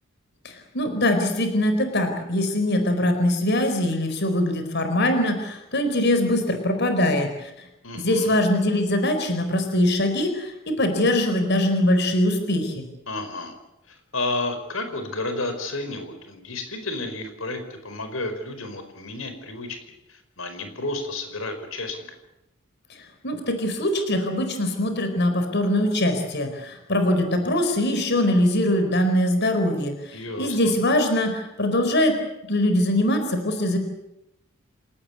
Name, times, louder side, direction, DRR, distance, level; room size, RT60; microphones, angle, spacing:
voice 1, 0.4-7.5 7.9-12.9 23.2-32.1 32.5-33.8, left 1 dB, 55° left, 6 dB, 4.5 m, -22 dB
voice 2, 7.8-8.4 13.1-13.6 13.9-22.2 30.1-30.7, left 2 dB, 85° left, 7 dB, 4.8 m, -32 dB
28.5 x 18.0 x 8.4 m, 0.89 s
head